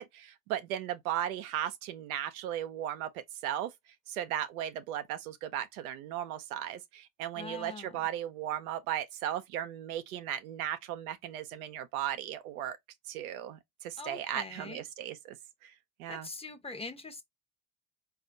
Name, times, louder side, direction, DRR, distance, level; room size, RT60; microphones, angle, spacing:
voice 1, 0.0-3.7 4.1-12.8 13.1-15.4 15.6-15.7 16.0-16.3, right 11 dB, 90° right, 0.6 m, -36 dB
voice 2, 7.3-8.0 14.0-14.8 16.1-17.2, left 3 dB, 15° left, 0.7 m, -43 dB
4.2 x 2.4 x 2.5 m
hypercardioid pair, 70°, 41 cm